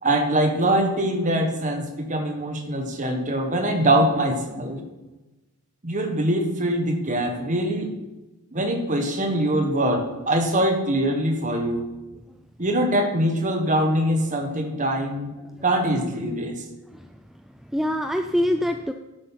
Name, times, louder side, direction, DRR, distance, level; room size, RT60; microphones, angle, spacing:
voice 1, 0.0-4.8 5.8-7.9 8.5-11.9 12.6-15.3 15.6-16.6, right 1 dB, 35° right, 4 dB, 1.4 m, -23 dB
voice 2, 16.9-18.9, equal, ahead, 6 dB, 0.3 m, -26 dB
10.5 x 8.2 x 5.8 m, 1.1 s
head